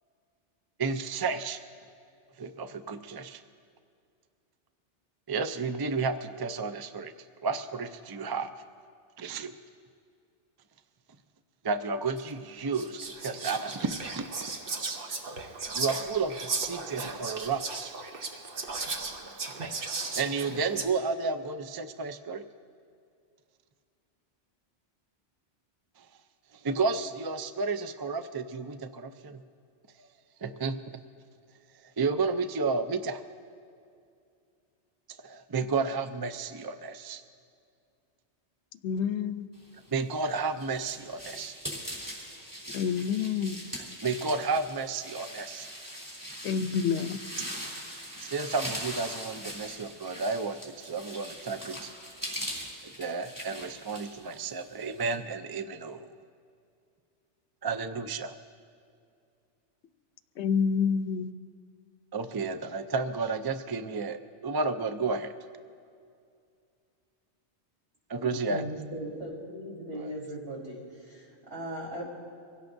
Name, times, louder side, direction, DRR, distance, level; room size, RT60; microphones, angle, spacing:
voice 1, 0.8-1.6 2.4-3.4 5.3-7.1 7.4-8.5 9.2-9.6 11.6-13.9 14.1-14.2 15.7-17.9 20.1-22.4 26.6-29.4 30.4-30.8 32.0-33.2 35.2-37.2 39.9-41.5 43.8-45.7 48.2-51.9 53.0-56.1 57.6-58.3 62.1-65.3 68.1-68.6 69.9-70.1, right 4 dB, 35° right, 0.4 m, -32 dB
Whispering, 12.2-12.3 12.7-20.9, right 3 dB, 55° right, 1.1 m, -36 dB
voice 2, 38.8-39.4 42.7-43.6 46.4-47.0 60.4-61.3, left 6 dB, 80° left, 0.9 m, -27 dB
sound 1, 40.0-55.1, equal, 15° right, 3.5 m, -41 dB
voice 3, 68.5-72.0, right 1 dB, 70° right, 4.4 m, -38 dB
25.0 x 17.0 x 2.6 m
omnidirectional pair, 1.2 m